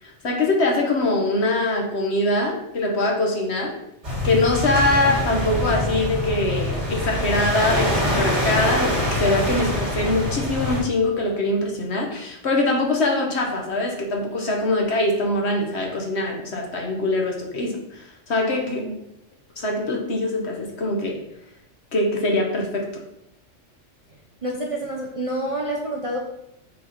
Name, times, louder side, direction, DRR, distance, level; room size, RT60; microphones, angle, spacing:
voice 1, 0.0-3.7 4.2-18.8 19.6-21.2 21.9-23.0, left 2 dB, 60° left, 0 dB, 1.4 m, -23 dB
sound 1, 4.0-10.8, left 1 dB, 65° right, 2.4 m, -24 dB
voice 2, 18.6-19.0 24.4-26.2, right 1 dB, 35° right, -2 dB, 0.6 m, -28 dB
5.4 x 4.4 x 4.1 m, 0.83 s
omnidirectional pair, 1.3 m